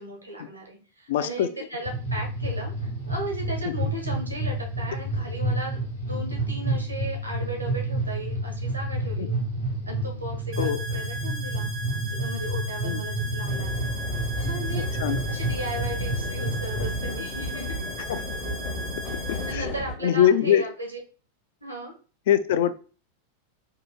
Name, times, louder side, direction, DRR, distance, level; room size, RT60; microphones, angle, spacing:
voice 1, 0.0-5.8 6.0-9.4 9.9-11.7 12.0-13.9 14.4-14.9 15.3-17.8 19.5-21.0 21.6-21.9, right 1 dB, 85° right, 0 dB, 1.1 m, -36 dB
voice 2, 1.1-1.5 3.6-3.9 9.2-9.3 10.6-10.8 12.8-13.0 15.0-15.2 18.1-18.2 19.3-19.7 20.0-20.6 22.3-22.7, left 10 dB, 55° left, 12 dB, 0.3 m, -23 dB
sound 1, 1.8-17.0, right 1 dB, 90° left, 0.9 m, -30 dB
sound 2, 10.5-19.5, right 1 dB, 35° right, 0.5 m, -37 dB
sound 3, 13.5-20.0, left 1 dB, 35° left, 0.7 m, -33 dB
3.8 x 2.7 x 2.2 m, 0.36 s
figure-of-eight pair, 90°, 0 cm